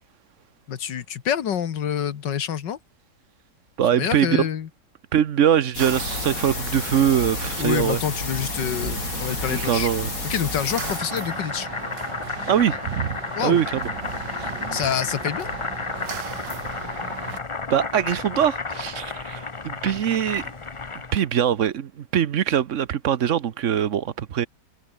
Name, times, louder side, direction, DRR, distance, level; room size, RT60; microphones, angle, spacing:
voice 1, 0.7-2.8 3.9-4.7 7.6-9.9 10.2-11.7 13.4-13.6 14.7-15.5, left 9 dB, 85° left, 2.0 m, -27 dB
voice 2, 3.8-4.5 5.1-8.0 9.5-10.1 12.5-13.8 14.4-14.5 17.7-20.4 21.1-24.5, right 9 dB, 55° right, 1.0 m, -22 dB
sound 1, 5.7-11.0, left 4 dB, 50° left, 3.0 m, -31 dB
sound 2, 5.8-17.4, right 8 dB, 85° right, 2.2 m, -37 dB
Boiling, 10.6-21.3, left 4 dB, 25° left, 0.8 m, -32 dB
omnidirectional pair, 1.8 m